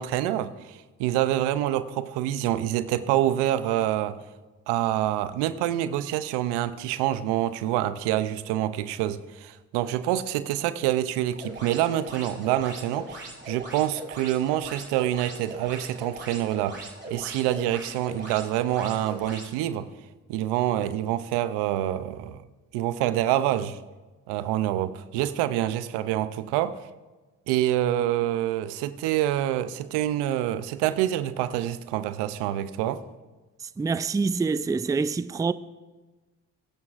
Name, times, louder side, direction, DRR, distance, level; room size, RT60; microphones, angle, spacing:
voice 1, 0.0-4.2 4.7-19.9 20.3-22.4 22.7-23.8 24.3-26.8 27.5-33.0, right 12 dB, 90° right, 0.6 m, -26 dB
sound 1, 11.3-19.5, right 2 dB, 25° right, 3.3 m, -40 dB
voice 2, 33.8-35.5, right 4 dB, 10° right, 0.3 m, -26 dB
21.0 x 9.8 x 2.5 m
supercardioid pair, 45°, 40 cm